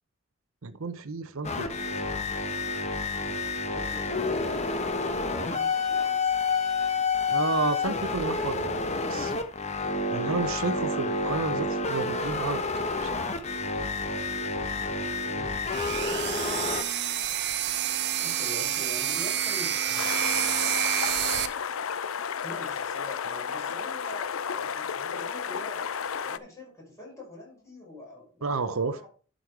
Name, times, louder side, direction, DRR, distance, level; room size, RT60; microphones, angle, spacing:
voice 1, 0.6-1.8 7.3-9.3 10.1-13.3 28.4-29.0, right 4 dB, 80° right, 11 dB, 0.7 m, -31 dB
sound 1, 1.4-16.8, left 3 dB, 35° left, 1.0 m, -29 dB
voice 2, 3.7-4.7 5.3-6.6 15.3-15.9 18.2-20.1 22.4-25.9 26.2-29.1, left 1 dB, 15° left, -4 dB, 5.4 m, -44 dB
sound 2, 15.7-21.5, right 9 dB, 55° right, 0.9 m, -28 dB
sound 3, 20.0-26.4, left 7 dB, 75° left, 0.6 m, -33 dB
11.5 x 5.2 x 4.6 m, 0.39 s
head